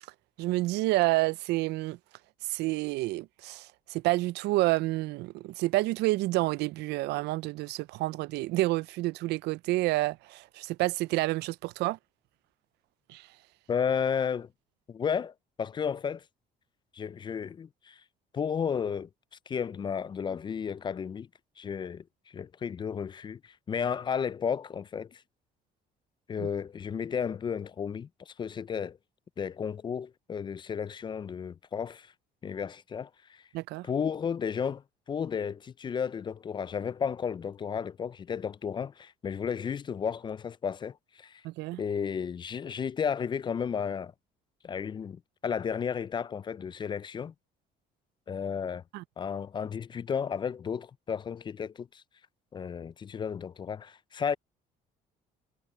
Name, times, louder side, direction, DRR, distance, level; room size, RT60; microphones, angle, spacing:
voice 1, 0.4-2.0 2.5-12.0 13.1-13.3 26.4-26.5 33.5-33.9 41.4-41.8 48.9-49.0, right 19 dB, 80° right, 0.4 m, -29 dB
voice 2, 13.7-14.5 14.9-16.2 16.9-18.0 18.3-19.1 19.5-21.3 21.6-22.0 22.3-25.2 26.3-29.0 29.4-32.1 32.4-33.4 33.8-34.8 35.1-41.4 41.8-44.1 44.6-47.3 48.3-48.8 49.2-52.0 52.5-54.3, left 7 dB, 30° left, 0.3 m, -33 dB
cardioid pair, 110°, 17 cm